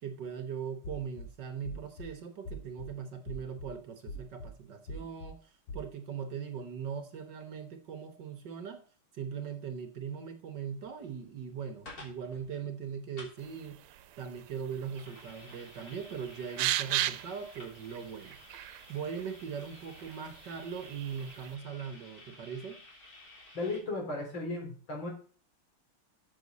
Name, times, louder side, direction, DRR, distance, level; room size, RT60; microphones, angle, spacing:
voice 1, 0.0-8.8 9.1-22.8, right 7 dB, 60° right, 7 dB, 1.6 m, -40 dB
sound 1, 0.8-1.3 1.6-2.1 2.5-2.9 3.3-3.7 4.1-4.5 4.9-5.3 5.7-5.9, equal, 80° left, 2.7 m, -42 dB
sound 2, 10.7-23.8, left 2 dB, 40° left, 3.9 m, -54 dB
sound 3, 13.4-21.6, right 13 dB, 85° right, 1.5 m, -39 dB
voice 2, 23.5-25.1, left 2 dB, 60° left, 1 dB, 4.5 m, -35 dB
13.0 x 7.2 x 4.1 m, 0.41 s
omnidirectional pair, 2.3 m